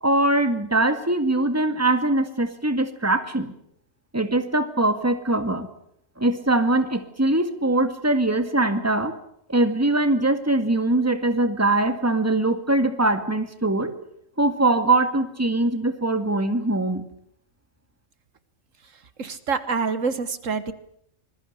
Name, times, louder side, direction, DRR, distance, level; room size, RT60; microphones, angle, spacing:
voice 1, 0.0-3.5 4.1-5.7 6.2-9.1 9.5-13.9 14.4-17.0, right 2 dB, 10° right, 9 dB, 2.1 m, -22 dB
voice 2, 19.2-20.7, right 5 dB, 70° right, 13 dB, 1.7 m, -26 dB
26.5 x 21.0 x 6.8 m, 0.70 s
omnidirectional pair, 1.4 m